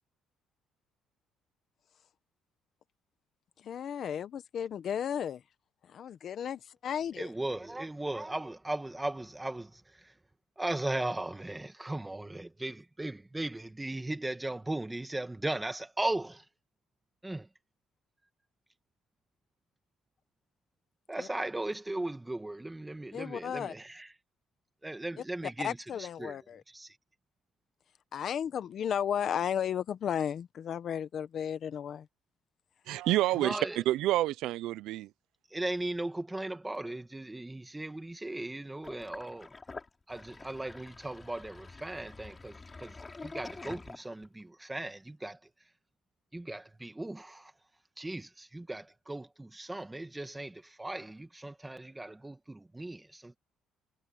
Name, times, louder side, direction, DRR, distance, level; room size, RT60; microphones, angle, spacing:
voice 1, 3.6-5.4 5.9-7.3 21.2-21.3 23.1-23.7 25.2-26.6 28.1-32.1, left 8 dB, 45° left, 1.1 m, -34 dB
voice 2, 7.2-10.1 10.6-16.4 17.2-17.5 21.1-24.1 24.8-25.8 26.2-26.4 26.7-27.0 33.3-33.8 35.5-39.5 40.1-42.9 43.2-45.4 46.3-47.5 48.0-53.4, right 2 dB, 10° right, 1.8 m, -37 dB
voice 3, 32.9-35.1, right 15 dB, 80° right, 0.5 m, -28 dB
Sink (filling or washing), 38.8-44.4, left 3 dB, 15° left, 6.4 m, -47 dB
cardioid pair, 150°, 0 cm